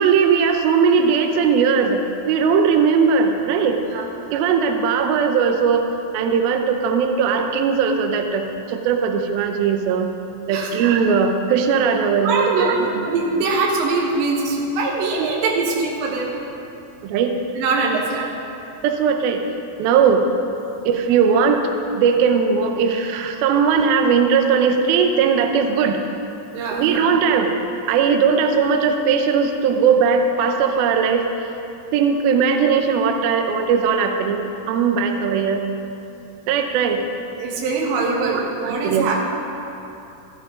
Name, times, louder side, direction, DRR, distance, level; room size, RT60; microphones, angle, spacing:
voice 1, 0.0-2.0 2.3-3.8 4.3-5.8 6.1-10.1 10.5-13.1 15.2-15.3 17.0-17.3 18.2-18.3 18.8-19.4 19.8-20.2 20.8-21.6 21.9-26.0 26.7-27.5 27.9-31.5 31.9-35.6 36.5-37.0 38.3-39.2, right 6 dB, 85° right, 5 dB, 2.1 m, -19 dB
voice 2, 12.2-12.7 13.1-16.3 17.6-18.2 26.5-26.8 37.4-39.2, right 3 dB, 70° right, -3 dB, 3.6 m, -22 dB
15.5 x 12.5 x 3.8 m, 2.9 s
omnidirectional pair, 5.5 m